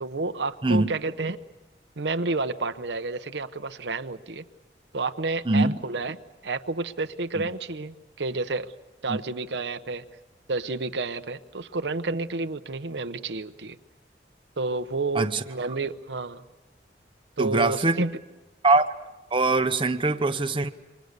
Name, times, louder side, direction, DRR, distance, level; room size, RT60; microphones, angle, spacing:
voice 1, 0.0-1.4 2.0-4.5 4.9-6.2 6.4-8.7 9.0-10.1 10.5-13.8 14.6-16.4 17.4-18.1, right 3 dB, 80° right, 9 dB, 0.9 m, -30 dB
voice 2, 5.5-5.8 7.4-7.5 9.1-9.2 15.1-15.4 17.4-18.0 18.6-18.9 19.3-20.7, right 2 dB, 30° right, 7 dB, 0.9 m, -22 dB
28.0 x 24.5 x 6.7 m, 1.1 s
head